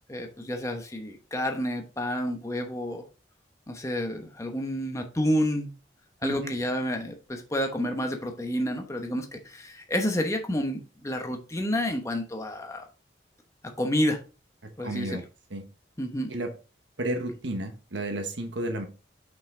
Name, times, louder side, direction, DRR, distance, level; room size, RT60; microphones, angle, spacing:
voice 1, 0.1-3.0 3.7-5.7 6.2-12.9 13.8-14.2 14.8-15.2 16.0-16.3, equal, 15° left, 1.0 m, -29 dB
voice 2, 6.2-6.5 14.8-15.2 15.5-15.6 16.3-16.5 17.0-18.8, right 1 dB, 85° right, 1.2 m, -32 dB
6.0 x 5.6 x 3.7 m
head